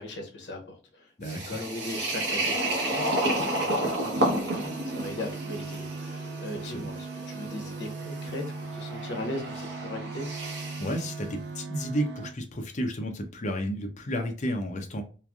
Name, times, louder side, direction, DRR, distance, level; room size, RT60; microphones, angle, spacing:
voice 1, 0.0-10.3, left 2 dB, 80° left, 3 dB, 0.8 m, -38 dB
voice 2, 1.2-1.6 6.6-6.9 10.8-15.0, equal, 40° left, 3 dB, 0.6 m, -32 dB
sound 1, 1.2-11.0, right 1 dB, 80° right, 1.0 m, -31 dB
sound 2, 4.3-12.3, right 4 dB, 60° right, 0.4 m, -38 dB
3.1 x 2.4 x 2.3 m, 0.37 s
head